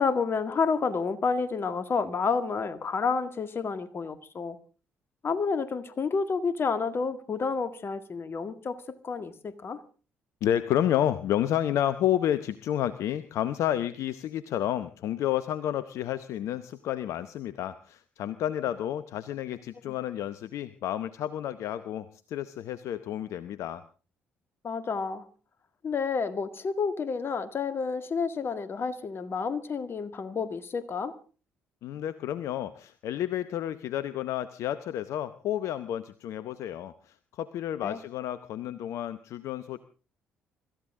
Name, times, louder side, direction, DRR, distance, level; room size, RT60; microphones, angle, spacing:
voice 1, 0.0-4.6 5.2-9.8 19.9-20.0 24.6-25.3 25.8-31.2 37.8-38.0, left 5 dB, 45° left, 11 dB, 1.9 m, -30 dB
voice 2, 10.4-23.8 31.8-39.8, left 11 dB, 65° left, 14 dB, 0.8 m, -30 dB
25.0 x 14.5 x 3.7 m, 0.35 s
hypercardioid pair, 50°, 6 cm